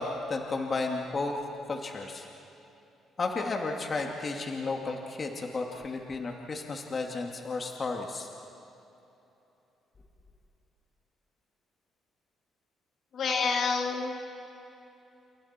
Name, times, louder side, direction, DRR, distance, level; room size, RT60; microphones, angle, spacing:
voice 1, 0.0-1.4 1.7-2.3 3.2-8.3, left 3 dB, 45° left, 2 dB, 2.4 m, -33 dB
voice 2, 13.1-14.1, left 4 dB, 60° left, 2 dB, 2.7 m, -28 dB
29.5 x 28.5 x 4.5 m, 3.0 s
hypercardioid pair, 55°, 0 cm